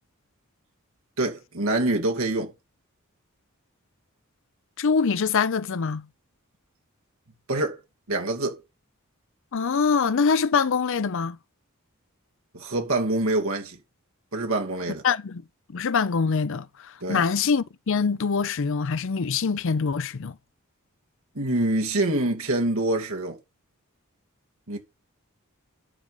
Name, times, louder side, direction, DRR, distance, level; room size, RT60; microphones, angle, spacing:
voice 1, 1.2-2.5 7.5-7.8 8.1-8.6 12.5-13.8 14.3-15.0 17.0-17.2 21.3-23.4 24.7-24.8, right 2 dB, 70° right, 2.5 m, -25 dB
voice 2, 4.8-6.1 9.5-11.4 15.0-15.4 15.7-20.4, left 5 dB, 60° left, 0.5 m, -24 dB
11.0 x 4.8 x 5.4 m
head